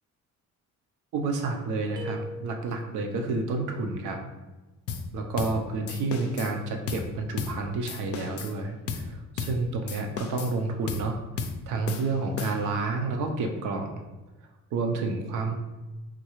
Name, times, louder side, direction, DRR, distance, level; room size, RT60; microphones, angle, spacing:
voice 1, 1.1-4.2 5.1-11.2 11.7-14.0 14.7-15.6, right 3 dB, 80° right, 4 dB, 0.6 m, -30 dB
sound 1, 2.0-3.1, left 1 dB, 15° right, 0.4 m, -40 dB
sound 2, 4.9-5.1 5.4-5.6 5.9-6.5 6.9-7.1 7.4-7.6 7.9-8.5 8.9-9.1 9.4-9.6 9.9-10.6 10.9-11.1 11.4-11.6 11.9-12.8, left 5 dB, 55° left, 0.4 m, -34 dB
3.7 x 2.3 x 3.0 m, 1.1 s
cardioid pair, 90°, 30 cm